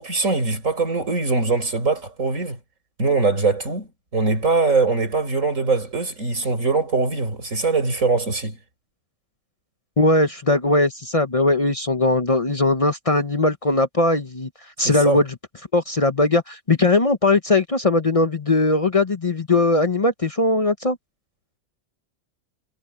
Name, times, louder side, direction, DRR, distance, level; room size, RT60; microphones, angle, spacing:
voice 1, 0.0-2.6 3.0-8.6 14.8-15.2, right 3 dB, 90° right, 6.2 m, -22 dB
voice 2, 10.0-14.5 14.8-15.3 15.7-21.0, left 2 dB, 30° left, 0.9 m, -19 dB
omnidirectional pair, 1.3 m